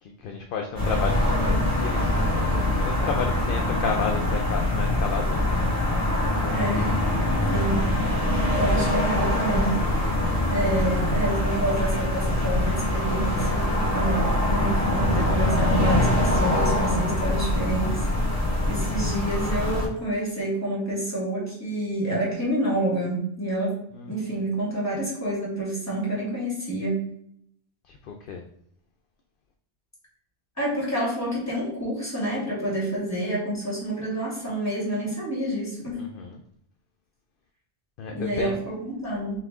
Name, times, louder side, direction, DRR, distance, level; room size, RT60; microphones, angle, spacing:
voice 1, 0.0-5.8 18.7-19.1 23.9-24.2 27.9-28.4 36.0-36.4 38.0-38.6, left 5 dB, 60° left, 3 dB, 0.6 m, -32 dB
sound 1, 0.8-19.9, left 1 dB, 20° right, 1.4 m, -24 dB
voice 2, 6.5-6.9 7.5-7.8 8.5-10.1 10.5-18.1 18.6-23.8 24.1-27.0 30.6-36.1 38.1-39.4, right 1 dB, 15° left, -5 dB, 1.8 m, -28 dB
5.7 x 2.4 x 3.5 m, 0.68 s
omnidirectional pair, 1.1 m